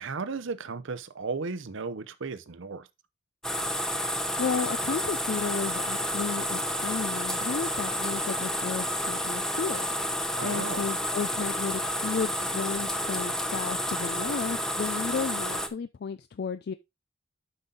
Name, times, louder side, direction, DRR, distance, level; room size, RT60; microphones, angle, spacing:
voice 1, 0.0-2.9 10.4-10.8, right 4 dB, 65° right, 0.7 m, -35 dB
sound 1, 3.4-15.7, equal, 5° left, 0.7 m, -30 dB
voice 2, 4.4-9.9 10.4-16.7, left 6 dB, 55° left, 0.4 m, -33 dB
7.9 x 5.5 x 3.8 m
head